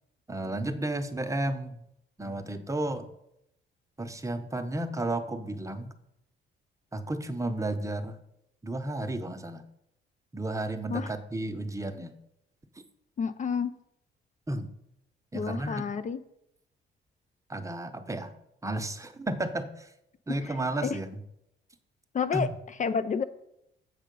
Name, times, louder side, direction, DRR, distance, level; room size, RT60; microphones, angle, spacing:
voice 1, 0.3-1.8 2.2-3.1 4.0-5.9 6.9-8.2 8.6-9.6 10.3-12.1 14.5-14.7 15.3-15.8 17.5-18.3 18.6-19.9 20.3-21.2 22.3-22.5, right 1 dB, 15° right, 7 dB, 0.8 m, -32 dB
voice 2, 13.2-13.7 15.3-16.2 20.4-20.5 20.8-21.0 22.1-22.5 22.8-23.2, left 6 dB, 40° left, 12 dB, 0.4 m, -29 dB
7.5 x 5.5 x 5.3 m, 0.79 s
cardioid pair, 90°, 20 cm